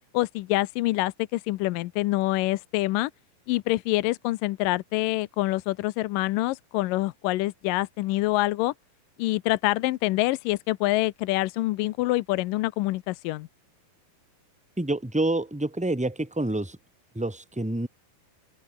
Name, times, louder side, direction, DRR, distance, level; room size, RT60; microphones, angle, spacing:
voice 1, 0.0-3.1 3.5-8.7 9.2-13.5, left 18 dB, 75° left, 2.2 m, -26 dB
voice 2, 14.8-16.8 17.1-17.9, right 2 dB, ahead, 1.9 m, -27 dB
open air
omnidirectional pair, 4.3 m